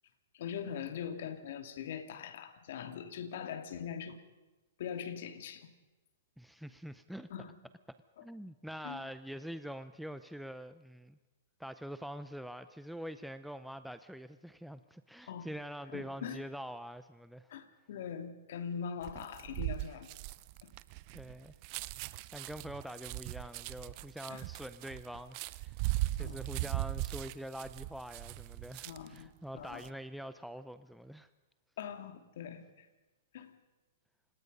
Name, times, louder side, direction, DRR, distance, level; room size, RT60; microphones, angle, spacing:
voice 1, 0.3-4.2 4.8-5.7 7.3-7.6 8.2-8.3 8.8-9.0 15.3-15.5 15.9-16.4 17.5-20.1 20.6-20.7 24.3-24.4 26.2-26.4 28.8-29.9 31.8-32.9 33.3-33.5, left 8 dB, 65° left, 8 dB, 2.5 m, -42 dB
voice 2, 6.4-7.3 8.2-11.2 11.6-17.5 21.1-21.5 22.3-25.8 26.2-31.3, equal, ahead, 11 dB, 0.6 m, -45 dB
sound 1, 19.0-29.2 29.6-29.9, right 19 dB, 40° right, 0.6 m, -39 dB
28.5 x 18.0 x 5.5 m, 1.1 s
hypercardioid pair, 140°, 0 cm